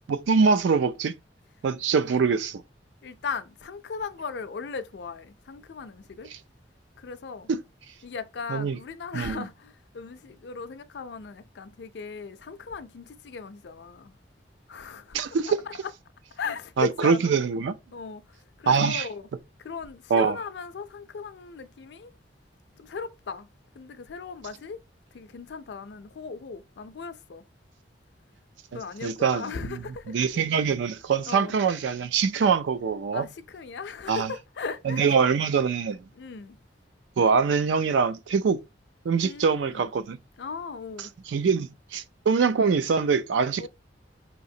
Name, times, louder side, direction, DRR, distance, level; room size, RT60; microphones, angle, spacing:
voice 1, 0.1-1.1 1.6-2.6 7.5-7.6 8.5-8.8 9.1-9.4 15.1-15.5 16.8-17.7 18.7-19.1 20.1-20.4 29.0-29.8 30.1-33.3 34.1-34.3 34.9-36.0 37.2-38.6 39.0-40.2 41.3-43.7, right 5 dB, 80° right, 0.4 m, -24 dB
voice 2, 3.0-6.3 7.0-7.5 8.0-14.2 14.7-15.9 16.3-17.3 17.9-19.3 19.6-22.1 22.8-23.5 23.7-24.8 25.1-27.4 28.7-30.2 31.2-31.6 33.1-35.1 36.1-36.6 39.2-39.8 40.4-41.1 43.6-43.7, left 5 dB, 65° left, 0.4 m, -37 dB
4.9 x 2.9 x 2.7 m
head